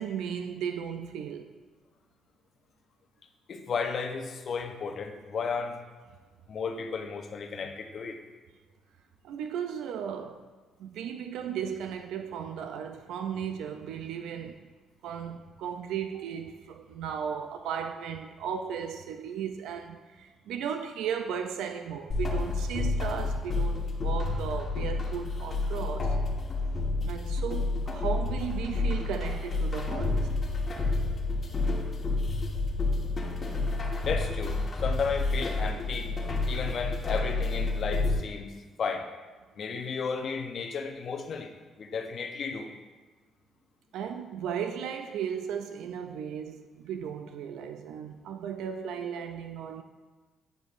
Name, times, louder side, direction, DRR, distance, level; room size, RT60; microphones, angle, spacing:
voice 1, 0.0-1.6 9.2-10.4 10.8-14.7 15.0-26.2 27.0-30.3 43.9-49.8, right 8 dB, 85° right, 0.3 m, -35 dB
voice 2, 3.5-5.8 6.5-8.2 34.0-36.1 36.5-38.5 38.8-39.1 39.6-41.5 41.8-42.7, left 5 dB, 55° left, 0.6 m, -33 dB
sound 1, 22.1-38.2, left 3 dB, 40° left, 1.2 m, -29 dB
9.5 x 5.0 x 2.5 m
cardioid pair, 90°, 0 cm